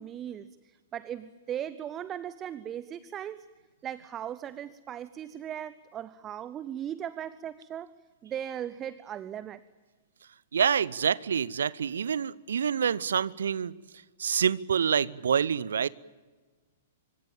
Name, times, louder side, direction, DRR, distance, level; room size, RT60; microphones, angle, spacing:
voice 1, 0.0-3.5 3.8-7.9 8.2-9.6, right 10 dB, 25° right, 0.7 m, -38 dB
voice 2, 10.5-13.8 14.2-15.9, right 7 dB, 65° right, 0.7 m, -27 dB
27.0 x 25.0 x 7.3 m
figure-of-eight pair, 105°, 0 cm